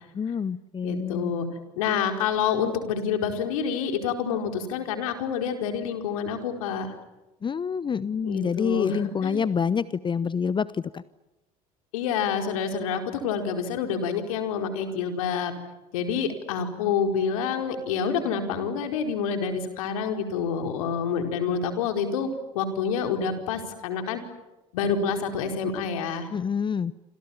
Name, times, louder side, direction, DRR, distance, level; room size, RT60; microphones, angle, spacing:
voice 1, 0.1-1.3 7.4-10.7 10.9-11.0 26.3-26.9, left 6 dB, 25° left, 18 dB, 0.9 m, -27 dB
voice 2, 0.8-1.5 1.8-6.9 8.2-9.4 11.9-15.5 15.9-22.3 22.5-24.2 24.7-26.3, left 6 dB, 70° left, 6 dB, 4.7 m, -27 dB
28.5 x 27.0 x 7.3 m, 1.0 s
hypercardioid pair, 70°, 18 cm